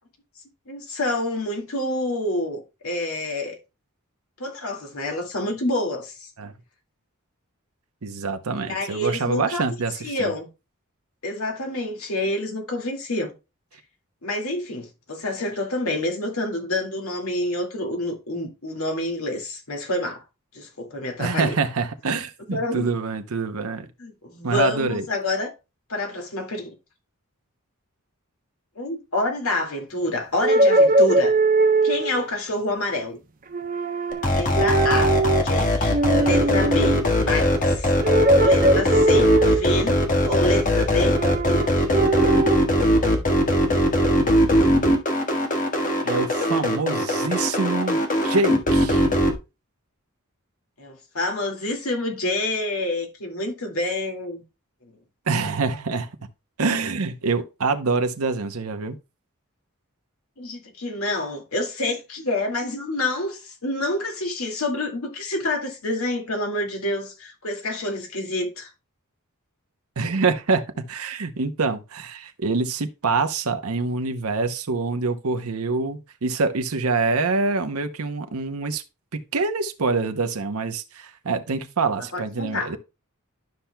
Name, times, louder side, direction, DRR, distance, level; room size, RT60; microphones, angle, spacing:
voice 1, 0.7-3.6 4.4-6.3 8.6-9.6 10.0-10.5 11.2-13.3 14.2-20.2 20.5-21.5 22.5-22.9 24.0-25.5 25.9-26.7 28.8-31.3 31.8-33.2 34.3-35.2 35.4-37.9 38.4-41.9 50.8-54.4 60.4-68.7 82.1-82.7, left 2 dB, 75° left, 2.1 m, -28 dB
voice 2, 8.0-10.3 21.2-23.9 24.4-25.0 46.0-48.0 48.2-49.1 55.3-56.1 56.6-59.0 70.0-78.8 79.1-82.8, right 4 dB, 80° right, 0.8 m, -25 dB
sound 1, 30.4-32.2 33.5-34.3 34.5-35.5 35.9-37.1 38.0-39.9 40.9-42.6, right 2 dB, 40° right, 0.8 m, -20 dB
sound 2, 34.1-49.3, left 1 dB, 40° left, 1.4 m, -20 dB
12.0 x 5.8 x 2.2 m
head